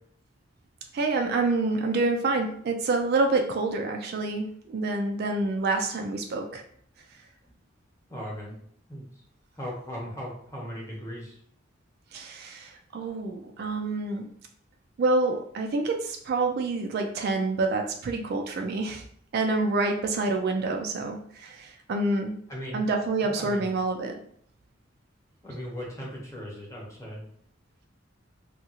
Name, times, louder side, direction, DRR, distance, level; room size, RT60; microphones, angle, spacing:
voice 1, 0.9-6.6 12.1-14.3 15.0-19.0 19.3-22.4 22.7-24.1, right 3 dB, 55° right, 3 dB, 0.3 m, -27 dB
voice 2, 8.1-8.5 8.9-9.0 9.5-11.4 22.5-22.8 23.2-23.7 25.4-27.2, equal, 15° left, -4 dB, 0.9 m, -38 dB
2.8 x 2.4 x 2.8 m, 0.63 s
head